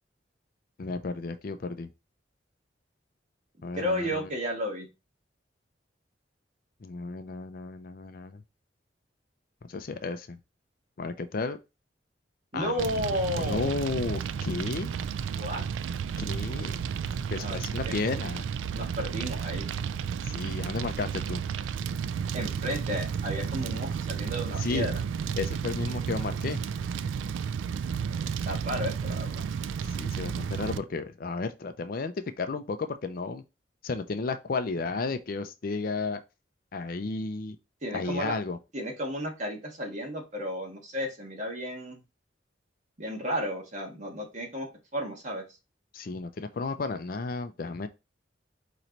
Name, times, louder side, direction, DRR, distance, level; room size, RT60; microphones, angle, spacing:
voice 1, 0.8-1.9 3.6-4.3 6.8-8.4 9.7-10.4 11.0-11.6 12.5-12.9 13.3-15.0 16.2-16.8 17.3-18.5 20.2-21.4 24.6-24.9 25.4-26.6 29.9-33.4 33.8-36.2 36.7-37.6 37.9-38.6 45.9-47.9, left 3 dB, 50° left, 0.4 m, -33 dB
voice 2, 3.7-4.9 12.5-13.7 15.4-15.6 17.3-18.0 18.7-19.6 22.3-24.9 28.1-29.4 37.8-38.4 38.7-42.0 43.0-45.4, equal, 40° right, 1.5 m, -33 dB
Fire, 12.8-30.8, right 7 dB, 90° right, 0.3 m, -32 dB
4.4 x 3.0 x 3.9 m
head